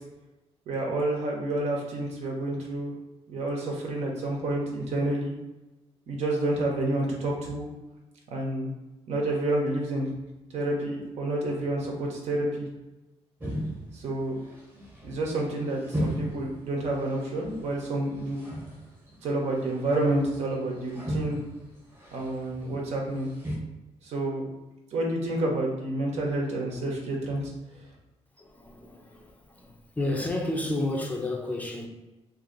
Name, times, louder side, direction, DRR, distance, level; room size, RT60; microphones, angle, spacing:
voice 1, 0.7-2.9 3.3-5.3 6.1-7.7 8.3-8.7 9.1-10.1 10.5-12.7 13.9-14.4 15.0-18.4 19.2-21.4 22.1-23.3 24.0-24.5 24.9-27.5, right 1 dB, 70° right, -1 dB, 0.9 m, -29 dB
sound 1, 13.4-23.6, equal, 20° right, 0.9 m, -37 dB
voice 2, 28.4-31.9, left 2 dB, 15° left, 0 dB, 0.5 m, -31 dB
2.7 x 2.7 x 3.9 m, 1.0 s
cardioid pair, 125°, 12 cm